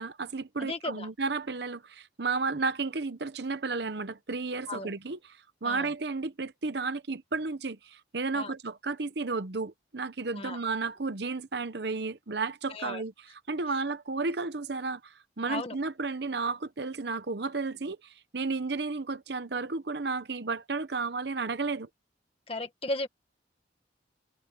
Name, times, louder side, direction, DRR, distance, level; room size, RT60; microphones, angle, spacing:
voice 1, 0.0-5.2 5.6-13.1 13.5-21.9, right 4 dB, 60° right, 0.9 m, -33 dB
voice 2, 0.6-1.1 4.7-5.0 5.6-5.9 8.3-8.5 10.3-10.6 12.7-13.0 15.5-15.8 22.5-23.1, left 2 dB, 30° left, 1.7 m, -35 dB
head